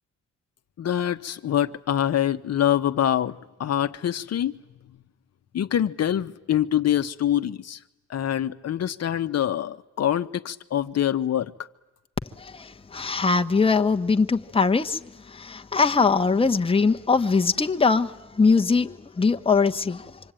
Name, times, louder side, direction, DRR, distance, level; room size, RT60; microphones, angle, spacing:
voice 1, 0.8-4.5 5.5-7.8 8.1-11.5, left 10 dB, 55° left, 1.2 m, -25 dB
voice 2, 12.3-20.2, left 4 dB, 20° left, 1.2 m, -22 dB
26.0 x 25.0 x 9.1 m
cardioid pair, 90°, 30 cm